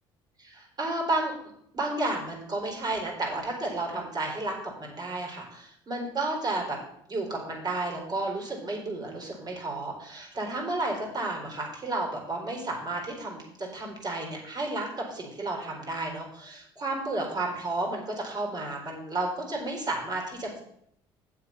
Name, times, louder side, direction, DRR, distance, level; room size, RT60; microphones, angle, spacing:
voice 1, 0.4-1.3 1.7-6.8 7.1-20.6, right 2 dB, 35° right, 0 dB, 4.1 m, -32 dB
8.8 x 7.2 x 5.6 m, 0.71 s
hypercardioid pair, 65°, 12 cm